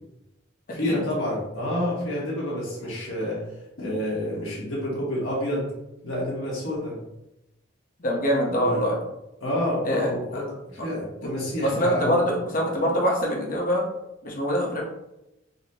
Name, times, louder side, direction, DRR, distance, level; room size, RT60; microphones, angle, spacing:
voice 1, 0.7-3.4 3.8-5.7 6.0-7.0 8.5-8.8 9.4-12.4, left 1 dB, 80° left, -5 dB, 1.2 m, -28 dB
voice 2, 8.0-9.0 9.8-10.4 10.8-10.9 11.6-13.8 14.2-14.8, equal, 40° left, -1 dB, 0.8 m, -24 dB
4.0 x 2.8 x 2.8 m, 0.90 s
head